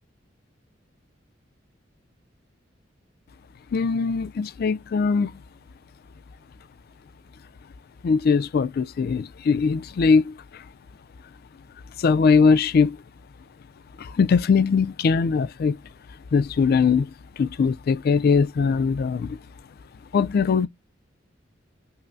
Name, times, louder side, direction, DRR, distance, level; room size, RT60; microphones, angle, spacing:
voice 1, 3.7-5.3 8.0-10.3 12.0-13.0 14.0-15.8 16.3-17.1 17.4-19.4 20.1-20.7, left 5 dB, 55° left, 0.3 m, -21 dB
5.5 x 2.0 x 2.5 m
head